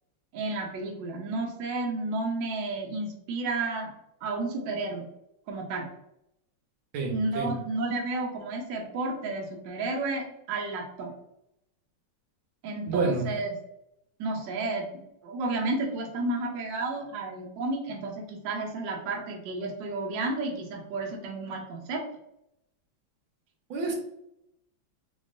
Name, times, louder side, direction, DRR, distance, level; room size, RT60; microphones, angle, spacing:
voice 1, 0.3-3.9 4.2-5.1 5.5-5.9 7.1-11.1 12.6-13.5 14.2-22.0, right 2 dB, 70° right, 1 dB, 1.3 m, -32 dB
voice 2, 6.9-7.5 12.9-13.2 23.7-23.9, right 4 dB, 90° right, 1 dB, 1.7 m, -28 dB
3.8 x 3.5 x 2.5 m, 0.80 s
omnidirectional pair, 2.2 m